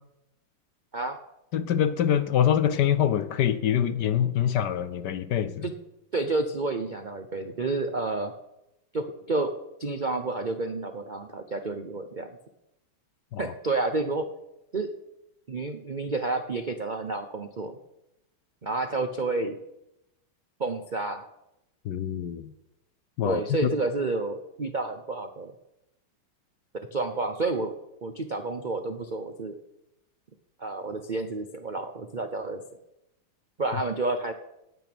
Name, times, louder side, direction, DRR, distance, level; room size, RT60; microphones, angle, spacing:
voice 1, 1.5-5.6 13.3-13.5 21.8-22.5 23.2-23.7, left 9 dB, 65° left, 13 dB, 1.2 m, -25 dB
voice 2, 6.1-8.3 8.9-9.5 9.8-12.3 13.4-14.3 14.7-14.9 15.5-17.8 18.6-19.6 20.6-21.3 23.2-25.5 26.9-27.7 28.0-29.5 30.6-32.6 33.6-34.3, right 3 dB, 85° right, 7 dB, 0.4 m, -30 dB
17.5 x 9.2 x 6.1 m, 0.89 s
omnidirectional pair, 2.3 m